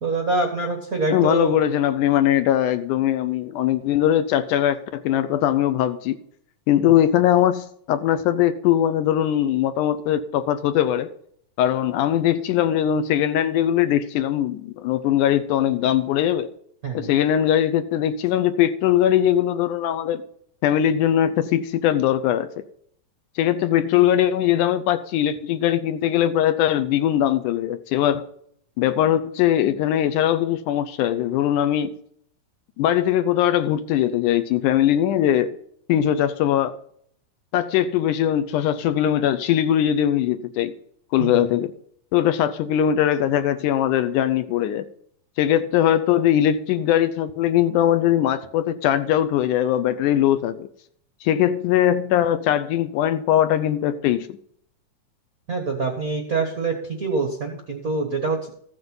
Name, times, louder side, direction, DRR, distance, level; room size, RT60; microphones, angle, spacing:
voice 1, 0.0-1.5 6.8-6.9 16.8-17.1 41.2-41.4 55.5-58.5, right 3 dB, 80° right, 0.7 m, -25 dB
voice 2, 1.1-6.2 6.7-11.1 11.6-16.5 16.9-20.2 20.6-22.5 23.4-28.3 28.8-31.9 32.8-35.6 35.9-36.8 37.5-40.7 41.1-41.7 42.1-44.9 45.4-50.7 51.2-54.4, left 11 dB, 80° left, 1.8 m, -20 dB
15.5 x 7.8 x 5.4 m
omnidirectional pair, 4.2 m